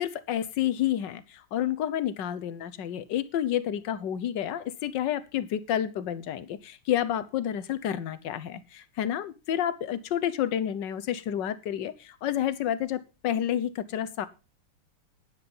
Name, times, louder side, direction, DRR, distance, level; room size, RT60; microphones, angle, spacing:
voice 1, 0.0-14.3, left 10 dB, 75° left, 14 dB, 1.5 m, -30 dB
9.9 x 9.9 x 5.4 m, 0.31 s
omnidirectional pair, 2.0 m